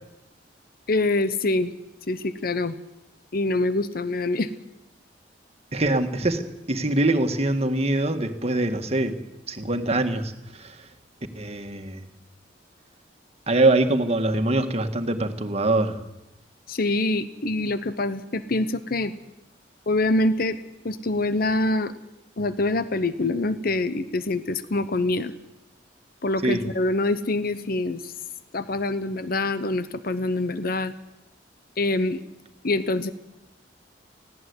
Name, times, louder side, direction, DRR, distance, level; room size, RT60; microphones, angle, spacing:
voice 1, 0.9-1.8 2.1-2.7 3.3-4.5 16.7-19.1 19.9-20.6 20.8-22.0 22.4-25.3 26.2-28.1 28.5-30.9 31.8-32.2 32.6-33.1, left 2 dB, 55° left, 13 dB, 1.0 m, -25 dB
voice 2, 5.7-9.2 9.5-10.7 11.3-12.1 13.5-16.0 26.4-26.6, right 2 dB, 35° right, 6 dB, 1.8 m, -23 dB
18.5 x 16.5 x 9.6 m, 0.92 s
head